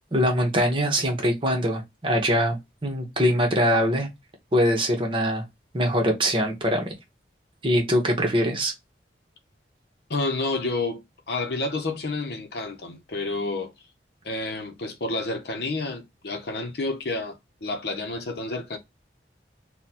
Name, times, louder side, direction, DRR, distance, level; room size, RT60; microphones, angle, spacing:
voice 1, 0.1-2.6 2.8-4.1 4.5-5.4 5.7-6.8 7.6-8.7, equal, 30° right, 0.9 m, -22 dB
voice 2, 10.1-13.7 14.2-18.8, left 2 dB, 60° left, 0.7 m, -30 dB
3.8 x 2.2 x 2.8 m
head